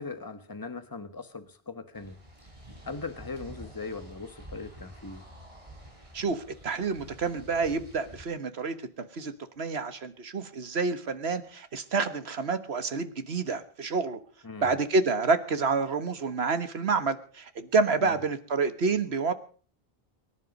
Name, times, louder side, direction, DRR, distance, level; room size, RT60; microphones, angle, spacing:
voice 1, 0.0-2.2 2.8-5.2 14.4-14.7 18.0-18.2, left 4 dB, 20° left, 1.4 m, -39 dB
sound 1, 1.9-8.3, equal, 30° right, 4.1 m, -49 dB
voice 2, 6.1-14.2 14.6-19.3, right 4 dB, 85° right, 1.7 m, -28 dB
23.0 x 11.0 x 5.4 m
omnidirectional pair, 1.0 m